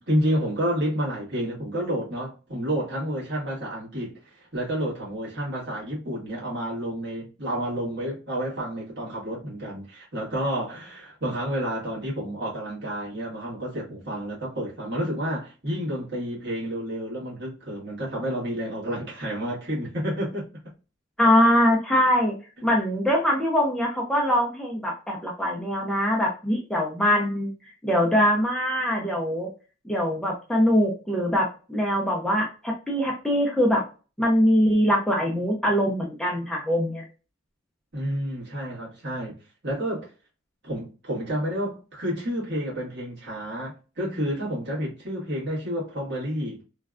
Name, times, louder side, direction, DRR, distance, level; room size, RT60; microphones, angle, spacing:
voice 1, 0.0-20.5 37.9-39.4 39.6-40.1 40.6-46.6, equal, 60° right, 1.6 m, -30 dB
voice 2, 21.2-22.3 22.6-27.5 27.8-29.5 29.8-33.8 34.2-37.0, equal, 5° left, 0.5 m, -23 dB
3.2 x 2.3 x 2.4 m
head